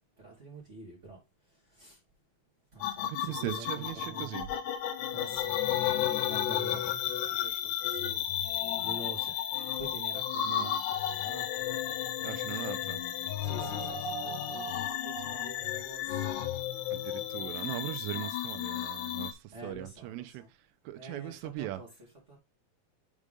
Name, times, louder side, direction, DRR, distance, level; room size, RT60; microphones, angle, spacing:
voice 1, 0.2-2.0 2.7-4.4 5.1-5.6 6.2-8.4 8.8-11.5 13.4-14.2 14.5-16.4 16.9-17.5 19.5-20.5 20.9-21.9 22.3-22.4, right 2 dB, 30° right, 1.2 m, -48 dB
sound 1, 2.8-19.3, left 10 dB, 75° left, 2.6 m, -33 dB
voice 2, 3.0-4.5 10.5-10.8 12.2-13.0 16.9-20.4 20.9-21.8, right 14 dB, 85° right, 3.0 m, -39 dB
7.5 x 5.0 x 3.7 m
omnidirectional pair, 6.0 m